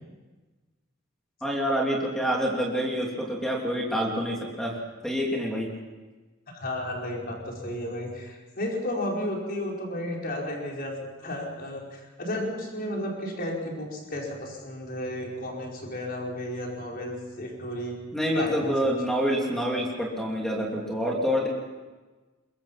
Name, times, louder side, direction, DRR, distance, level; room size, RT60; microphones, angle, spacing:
voice 1, 1.4-4.8 5.0-5.7 18.1-21.5, equal, ahead, -1 dB, 2.9 m, -27 dB
voice 2, 6.5-10.9 11.2-18.0 18.3-18.7, left 1 dB, 50° left, -1 dB, 5.3 m, -33 dB
23.0 x 21.5 x 5.8 m, 1.3 s
head